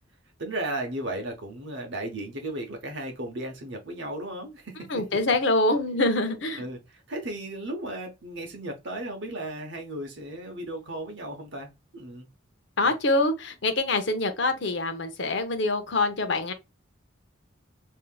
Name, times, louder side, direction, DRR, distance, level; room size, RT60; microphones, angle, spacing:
voice 1, 0.4-4.9 6.6-12.3 12.8-12.9, right 1 dB, 60° right, 0.9 m, -35 dB
voice 2, 4.9-6.6 12.8-16.5, left 2 dB, 60° left, 0.7 m, -25 dB
5.5 x 2.7 x 2.2 m
head